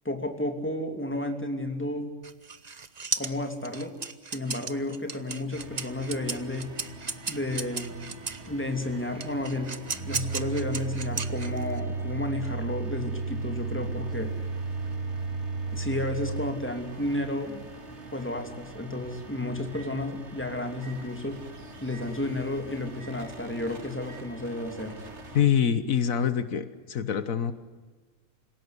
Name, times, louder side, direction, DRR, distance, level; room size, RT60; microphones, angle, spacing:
voice 1, 0.0-2.1 3.1-3.9 4.3-6.7 7.3-8.0 8.5-9.7 10.1-14.3 15.7-17.6 18.1-21.4 21.8-24.9, left 1 dB, 10° left, 4 dB, 2.9 m, -32 dB
sound 1, 2.2-8.5 9.2-11.8, right 5 dB, 35° right, 1.0 m, -35 dB
sound 2, 5.5-25.5, right 2 dB, 55° right, 2.4 m, -45 dB
Microwave oven, 7.8-20.4 20.8-21.0 21.9-22.1 23.0-23.2 24.1-24.2, right 4 dB, 80° right, 7.8 m, -36 dB
voice 2, 25.3-27.5, left 8 dB, 75° left, 12 dB, 1.4 m, -25 dB
26.5 x 17.0 x 9.7 m, 1.4 s
omnidirectional pair, 1.4 m